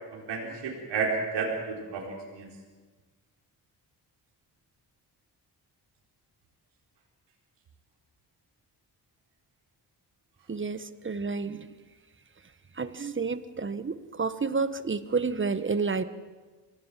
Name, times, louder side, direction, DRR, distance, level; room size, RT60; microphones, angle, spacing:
voice 1, 0.1-2.5, right 4 dB, 90° right, -2 dB, 4.4 m, -31 dB
voice 2, 10.5-11.7 12.8-16.0, right 4 dB, 30° right, 13 dB, 1.4 m, -30 dB
25.0 x 18.0 x 7.7 m, 1.4 s
cardioid pair, 70°, 41 cm